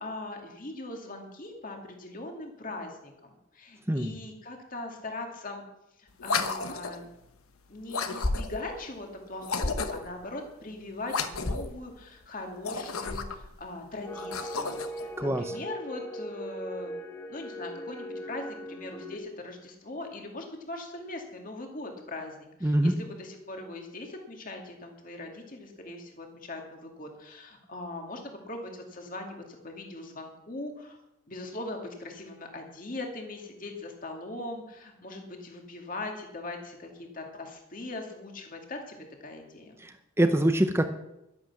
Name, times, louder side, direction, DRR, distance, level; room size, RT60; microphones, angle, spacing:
voice 1, 0.0-5.6 6.0-7.1 7.7-17.0 17.3-31.0 31.3-39.8, left 2 dB, 40° left, 2 dB, 2.3 m, -40 dB
sound 1, 6.2-7.1 7.9-8.7 9.4-10.2 11.1-11.8 12.5-13.5 14.1-15.0, left 3 dB, 90° left, 1.1 m, -32 dB
sound 2, 14.1-19.2, equal, 10° left, 1.3 m, -39 dB
voice 2, 22.6-23.0 39.8-40.9, right 1 dB, 10° right, 7 dB, 0.7 m, -24 dB
12.0 x 10.5 x 7.2 m, 0.88 s
head